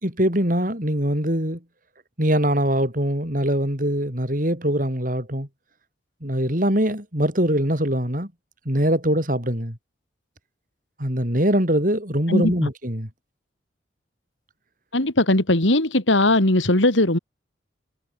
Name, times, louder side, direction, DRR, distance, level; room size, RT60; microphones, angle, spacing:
voice 1, 0.0-1.6 2.2-5.5 6.2-8.3 8.6-9.8 11.0-13.1, equal, 45° right, 6.3 m, -22 dB
voice 2, 14.9-17.2, left 1 dB, 75° left, 3.4 m, -19 dB
head